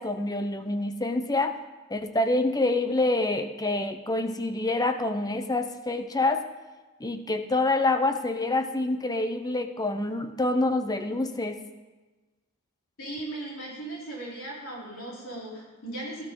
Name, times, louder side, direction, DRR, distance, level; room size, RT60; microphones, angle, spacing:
voice 1, 0.0-1.6 1.9-6.4 7.0-11.6, left 2 dB, 20° left, 8 dB, 0.8 m, -26 dB
voice 2, 13.0-16.3, right 2 dB, 70° left, -5 dB, 4.3 m, -37 dB
17.5 x 13.0 x 4.0 m, 1.2 s
head